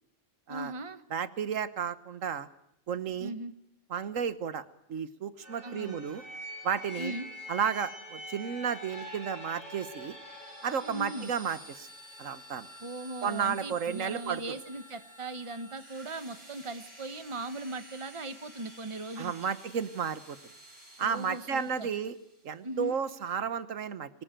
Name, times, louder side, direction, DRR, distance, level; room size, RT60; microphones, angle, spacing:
voice 1, 0.5-1.0 3.2-3.5 5.6-6.0 7.0-7.3 10.8-11.3 12.8-19.5 21.0-21.9 22.6-23.0, right 2 dB, 25° right, 11 dB, 1.2 m, -39 dB
voice 2, 1.1-2.5 2.9-3.3 3.9-4.6 4.9-6.2 6.6-7.1 7.5-10.1 10.6-11.9 12.2-12.7 13.2-14.6 19.2-20.4 21.0-22.1 22.4-24.1, right 7 dB, 85° right, 13 dB, 1.5 m, -32 dB
sound 1, 5.4-22.1, equal, 50° right, 6.8 m, -47 dB
24.0 x 19.5 x 9.0 m, 0.79 s
omnidirectional pair, 1.3 m